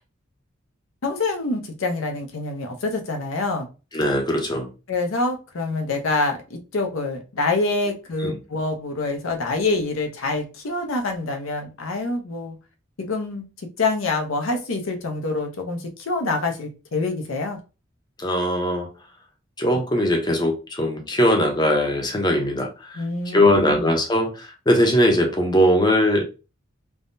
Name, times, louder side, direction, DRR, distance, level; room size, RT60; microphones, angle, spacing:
voice 1, 1.0-3.7 4.9-12.6 13.0-13.5 13.8-17.6 23.0-23.8, left 3 dB, 75° left, 0.6 m, -26 dB
voice 2, 3.9-4.7 8.2-8.4 18.2-18.9 19.6-26.2, equal, 20° left, 0.6 m, -20 dB
3.4 x 2.1 x 2.5 m
head